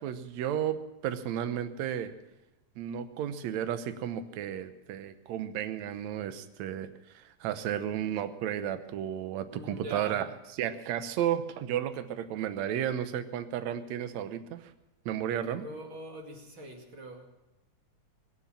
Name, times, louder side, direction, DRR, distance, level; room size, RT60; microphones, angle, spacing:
voice 1, 0.0-2.1 2.8-6.9 7.1-10.3 10.6-14.7 15.1-15.7, right 10 dB, 70° right, 11 dB, 2.1 m, -33 dB
voice 2, 9.5-10.2 15.5-17.3, right 2 dB, 45° right, 2 dB, 2.9 m, -43 dB
24.0 x 8.2 x 7.3 m, 0.98 s
omnidirectional pair, 3.4 m